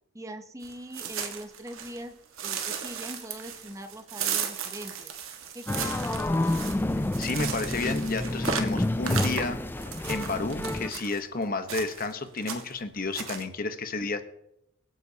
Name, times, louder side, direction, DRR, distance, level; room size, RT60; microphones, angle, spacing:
voice 1, 0.1-5.1 5.5-6.1, right 1 dB, 15° right, 8 dB, 0.8 m, -42 dB
sound 1, 0.6-2.0 2.4-11.2 11.7-12.1 12.4-12.8 13.1-13.4, right 7 dB, 90° right, 1.6 m, -35 dB
sound 2, 5.7-10.9, left 1 dB, 10° left, 0.3 m, -29 dB
voice 2, 7.0-9.6 10.1-14.2, left 3 dB, 45° left, 9 dB, 1.1 m, -31 dB
24.5 x 9.2 x 2.9 m, 0.81 s
head